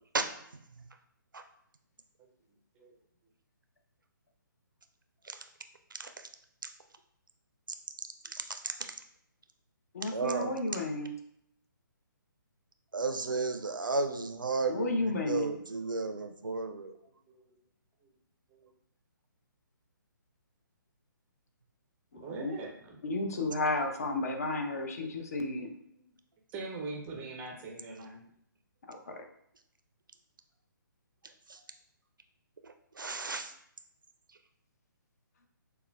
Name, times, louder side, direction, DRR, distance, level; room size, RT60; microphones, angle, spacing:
voice 1, 5.9-6.3 8.0-9.0 10.1-10.6 12.9-17.0 31.5-31.6 32.6-33.5, right 3 dB, 70° right, 7 dB, 0.4 m, -34 dB
voice 2, 9.9-11.1 14.7-15.5 22.1-22.5 23.0-25.7 28.9-29.2, left 2 dB, 45° left, 4 dB, 0.5 m, -32 dB
voice 3, 22.1-23.0 25.9-26.1 26.5-28.2, right 3 dB, 15° right, 0 dB, 0.4 m, -42 dB
6.5 x 2.2 x 2.2 m, 0.70 s
figure-of-eight pair, 135°, 11 cm